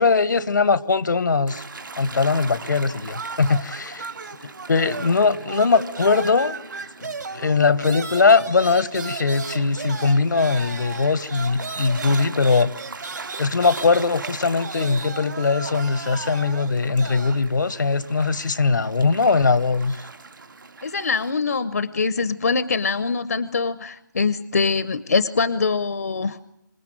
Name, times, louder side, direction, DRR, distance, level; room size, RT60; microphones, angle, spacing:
voice 1, 0.0-1.6 2.0-4.1 4.4-6.7 7.0-12.7 13.4-20.0, left 4 dB, 75° left, 17 dB, 1.2 m, -20 dB
Gull seagull / Waves surf, 1.5-21.3, right 4 dB, 90° right, 2.6 m, -41 dB
sound 1, 3.1-5.2 5.5-17.4, right 4 dB, 65° right, 2.5 m, -35 dB
voice 2, 20.8-26.4, left 4 dB, 55° left, 15 dB, 0.8 m, -23 dB
26.0 x 19.5 x 9.0 m, 0.86 s
hypercardioid pair, 175°, 10 cm